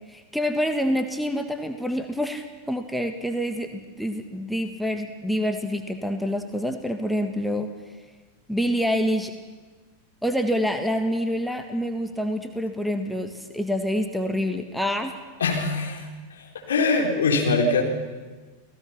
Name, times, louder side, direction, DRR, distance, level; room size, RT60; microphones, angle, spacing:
voice 1, 0.1-7.7 8.5-9.3 10.2-15.1, equal, ahead, 6 dB, 1.6 m, -27 dB
voice 2, 15.4-16.1 16.4-17.8, left 3 dB, 65° left, 1 dB, 4.3 m, -23 dB
30.0 x 18.5 x 5.9 m, 1.3 s
figure-of-eight pair, 90°, 0 cm